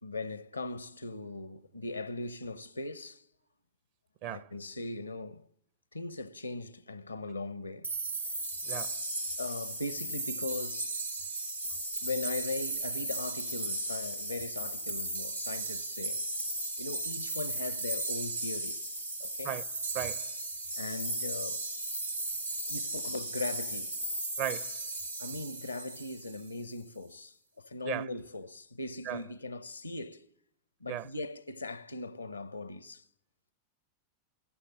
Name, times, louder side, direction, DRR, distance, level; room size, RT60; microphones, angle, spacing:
voice 1, 0.0-3.2 4.2-5.4 5.9-7.9 9.4-11.0 12.0-16.3 16.8-18.8 19.2-19.6 20.8-21.6 22.7-24.0 25.2-30.3 30.8-33.0, left 2 dB, 80° left, 0.7 m, -39 dB
sound 1, 7.8-26.5, right 2 dB, 85° right, 1.4 m, -36 dB
voice 2, 8.7-9.0 19.4-19.6 19.9-20.3 24.4-24.8 27.8-28.0 29.1-29.2 30.9-31.1, right 12 dB, 45° right, 0.8 m, -36 dB
21.5 x 14.5 x 10.0 m
figure-of-eight pair, 90°, 0 cm